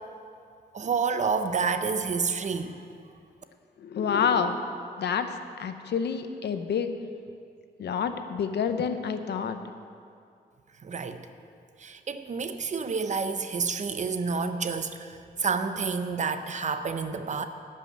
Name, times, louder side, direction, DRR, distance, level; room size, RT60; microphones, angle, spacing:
voice 1, 0.7-2.8 10.8-11.2 11.8-17.4, right 5 dB, 45° right, 9 dB, 0.7 m, -29 dB
voice 2, 3.8-4.6 5.0-5.3 5.6-6.9 7.8-9.6, left 7 dB, 85° left, 8 dB, 0.7 m, -28 dB
12.0 x 5.5 x 9.0 m, 2.4 s
wide cardioid pair, 110°, 17 cm